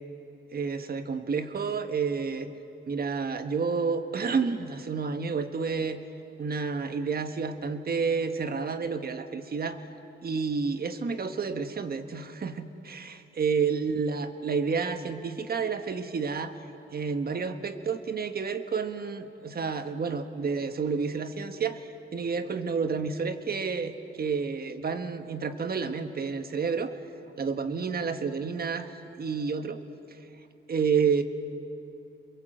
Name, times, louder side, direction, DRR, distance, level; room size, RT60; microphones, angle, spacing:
voice 1, 0.5-2.5 2.9-6.0 6.4-9.8 10.2-16.6 16.9-27.0 27.4-29.8 30.7-31.2, right 5 dB, 45° right, 8 dB, 1.4 m, -30 dB
28.0 x 22.0 x 7.8 m, 3.0 s
wide cardioid pair, 125°, 21 cm